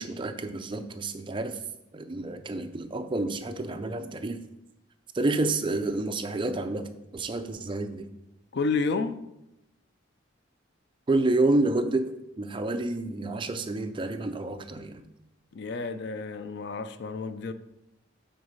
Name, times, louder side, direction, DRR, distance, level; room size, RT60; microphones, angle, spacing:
voice 1, 0.0-1.6 1.9-4.4 5.1-8.1 11.1-15.0, right 2 dB, 25° right, 0.4 m, -29 dB
voice 2, 8.5-9.2 15.5-17.5, left 4 dB, 55° left, 0.4 m, -30 dB
7.9 x 4.0 x 5.4 m
head